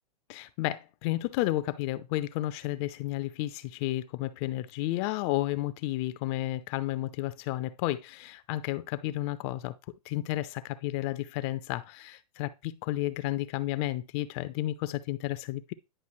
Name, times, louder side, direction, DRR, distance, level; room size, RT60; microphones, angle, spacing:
voice 1, 0.3-9.7 10.1-15.7, left 16 dB, 40° left, 0.6 m, -32 dB
10.0 x 5.2 x 3.1 m
hypercardioid pair, 120°, 20 cm